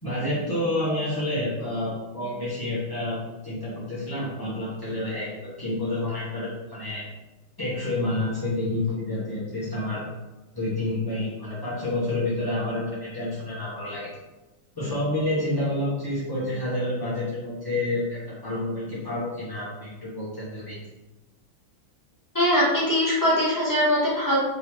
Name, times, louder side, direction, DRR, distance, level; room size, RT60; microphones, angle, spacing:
voice 1, 0.0-7.0 7.6-10.0 10.5-14.1 14.8-20.8, left 1 dB, 35° left, -10 dB, 0.3 m, -29 dB
voice 2, 22.3-24.4, equal, 15° left, -8 dB, 0.9 m, -21 dB
3.8 x 3.0 x 3.5 m, 1.0 s
omnidirectional pair, 2.3 m